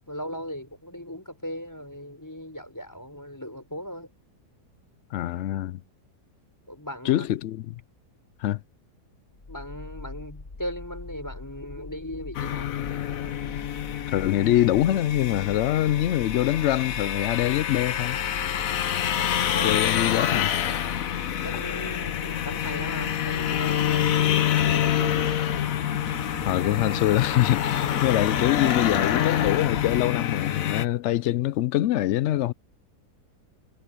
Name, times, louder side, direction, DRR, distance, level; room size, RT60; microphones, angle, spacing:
voice 1, 0.1-4.1 6.7-7.3 9.5-12.7 19.0-20.4 21.4-25.4, equal, 10° left, 6.5 m, -38 dB
voice 2, 5.1-5.8 7.1-7.8 8.4-8.6 14.1-18.2 19.6-20.5 26.4-32.5, left 13 dB, 90° left, 0.6 m, -24 dB
sound 1, 9.3-24.1, left 3 dB, 30° left, 1.4 m, -42 dB
sound 2, 12.3-30.8, left 10 dB, 60° left, 1.2 m, -27 dB
sound 3, 22.7-29.9, right 1 dB, 10° right, 1.6 m, -40 dB
omnidirectional pair, 1.8 m